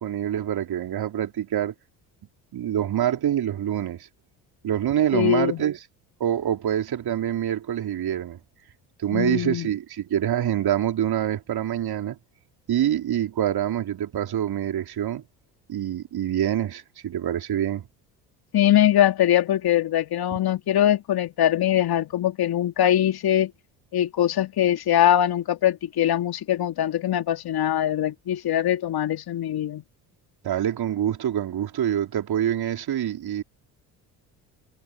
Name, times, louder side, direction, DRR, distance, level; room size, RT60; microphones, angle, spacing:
voice 1, 0.0-1.7 2.5-4.1 4.6-5.8 6.2-8.4 9.0-12.2 12.7-15.2 15.7-17.8 20.3-20.4 30.4-33.4, right 10 dB, 50° right, 4.2 m, -26 dB
voice 2, 5.1-5.6 9.1-9.7 18.5-23.5 23.9-29.8, left 11 dB, 50° left, 2.7 m, -22 dB
hypercardioid pair, 55°, 48 cm